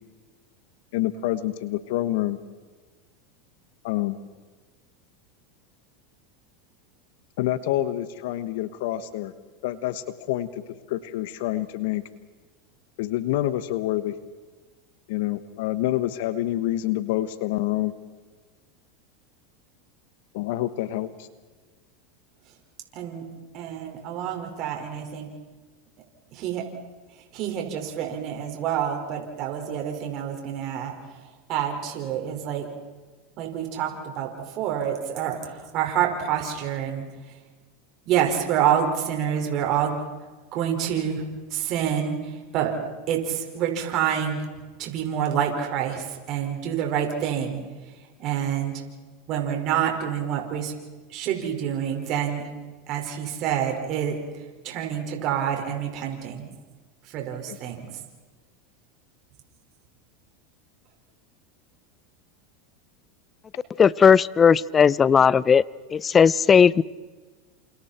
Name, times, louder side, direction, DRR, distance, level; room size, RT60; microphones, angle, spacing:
voice 1, 0.9-2.4 3.8-4.2 7.4-9.3 9.6-10.6 10.9-12.0 13.0-14.1 15.1-17.9 20.3-21.3 57.5-57.6, left 14 dB, 70° left, 13 dB, 1.2 m, -27 dB
voice 2, 22.9-23.3 23.5-25.3 26.3-26.7 27.1-32.7 33.4-37.4 38.0-40.0 40.5-42.8 43.1-44.5 44.8-48.8 49.3-50.7 51.1-52.5 52.9-56.5 57.0-58.0, right 9 dB, 50° right, 2 dB, 5.1 m, -28 dB
voice 3, 63.8-65.6 65.9-66.8, left 6 dB, 25° left, 21 dB, 0.6 m, -17 dB
29.0 x 28.0 x 4.5 m, 1.3 s
supercardioid pair, 115°, 0 cm